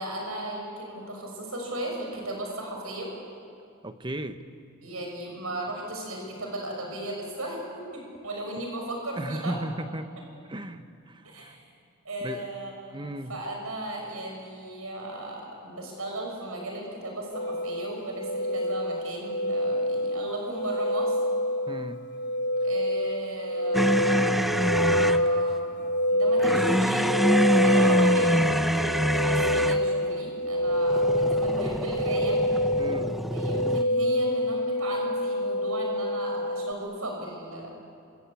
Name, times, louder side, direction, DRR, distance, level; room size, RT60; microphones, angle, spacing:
voice 1, 0.0-3.1 4.8-9.6 11.2-11.6 12.0-13.0 13.3-21.2 22.6-24.2 24.5-25.7 26.1-32.4 33.3-37.7, right 1 dB, 85° right, 1 dB, 6.4 m, -36 dB
voice 2, 3.8-4.4 9.2-10.1 10.5-11.6 12.2-12.5 12.9-13.3 21.7-22.0 32.8-33.2, right 1 dB, 20° right, 9 dB, 1.1 m, -35 dB
sound 1, 17.3-36.7, left 1 dB, 55° left, 0.9 m, -27 dB
sound 2, 23.7-25.3 26.4-29.9 30.8-33.8, equal, ahead, 0.6 m, -25 dB
27.5 x 25.5 x 8.5 m, 2.4 s
head